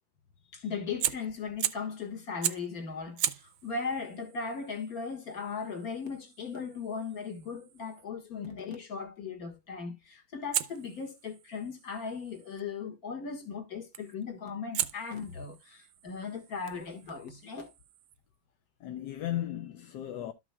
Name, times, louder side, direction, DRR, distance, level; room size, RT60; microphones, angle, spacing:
voice 1, 0.5-17.7, left 5 dB, 45° left, 2.0 m, -38 dB
Fire, 1.0-2.0 2.4-2.8 3.2-8.1 10.5-12.6 13.9-14.2 14.7-18.2, right 12 dB, 70° right, 1.3 m, -38 dB
voice 2, 18.8-20.3, left 12 dB, 65° left, 1.2 m, -36 dB
13.0 x 6.0 x 2.3 m
omnidirectional pair, 2.2 m